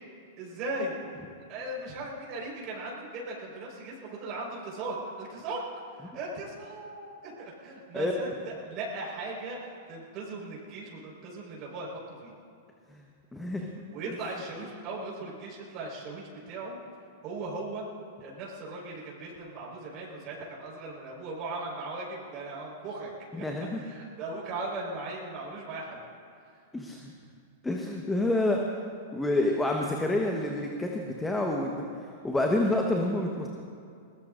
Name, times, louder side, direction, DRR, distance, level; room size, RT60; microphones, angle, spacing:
voice 1, 0.4-1.0 1.5-5.6 6.0-11.9 12.2-12.3 13.9-16.8 17.2-17.8 18.2-23.4 23.8-26.0, right 2 dB, 40° right, -4 dB, 4.9 m, -38 dB
voice 2, 13.3-13.7 14.1-14.2 23.3-23.8 26.7-27.1 27.6-28.6 29.1-31.9 32.2-33.5, left 1 dB, 10° left, 1 dB, 1.3 m, -28 dB
22.0 x 20.0 x 2.7 m, 2.4 s
hypercardioid pair, 100°, 0 cm